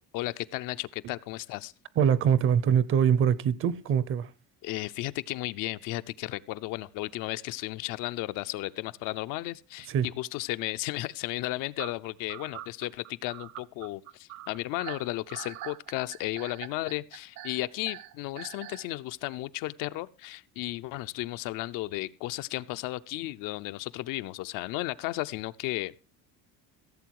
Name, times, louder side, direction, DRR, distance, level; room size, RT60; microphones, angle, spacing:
voice 1, 0.1-1.7 4.6-25.9, left 17 dB, 70° left, 0.6 m, -34 dB
voice 2, 2.0-4.3 9.9-10.1, right 8 dB, 40° right, 0.6 m, -23 dB
sound 1, 11.8-18.9, right 13 dB, 60° right, 0.9 m, -43 dB
15.5 x 7.7 x 4.6 m
cardioid pair, 180°, 34 cm